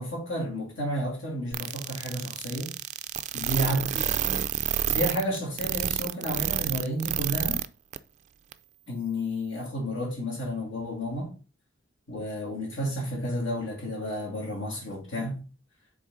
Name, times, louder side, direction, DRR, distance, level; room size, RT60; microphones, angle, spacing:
voice 1, 0.0-2.7 3.3-4.3 4.9-7.6 8.9-11.3 12.1-15.4, equal, 70° left, 2.7 m, -31 dB
sound 1, 1.5-7.7 7.9-8.0 8.5-8.6, right 10 dB, 35° right, 0.3 m, -28 dB
6.4 x 4.0 x 3.8 m
head